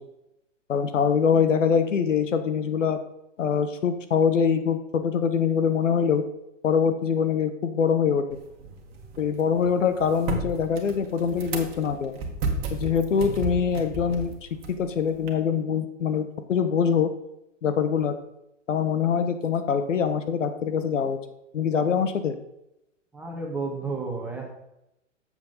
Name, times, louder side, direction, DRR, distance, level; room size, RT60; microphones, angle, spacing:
voice 1, 0.7-3.0 3.4-6.2 6.6-8.2 9.2-12.1 12.7-14.3 14.8-17.1 17.6-18.1 18.7-21.2 21.5-22.4, left 7 dB, 75° left, 9 dB, 1.0 m, -24 dB
sound 1, 8.3-15.3, right 3 dB, 40° right, 1.6 m, -34 dB
voice 2, 23.1-24.5, right 3 dB, 5° right, 0 dB, 1.2 m, -31 dB
7.3 x 7.3 x 3.9 m, 0.87 s
hypercardioid pair, 120°, 37 cm